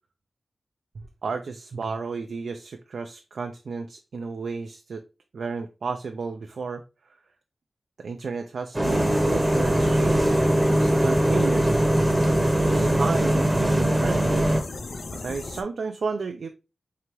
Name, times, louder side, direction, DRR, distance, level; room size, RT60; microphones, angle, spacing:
voice 1, 1.2-5.0 5.3-6.8 8.0-10.4 10.8-11.8 12.6-13.5 13.8-14.5 15.1-16.5, right 4 dB, 85° right, 5 dB, 0.4 m, -32 dB
Bus, 8.7-14.6, right 1 dB, 15° right, 0.8 m, -21 dB
sound 1, 8.8-15.6, left 3 dB, 60° left, 0.5 m, -36 dB
4.7 x 2.8 x 2.9 m, 0.29 s
wide cardioid pair, 105°, 0 cm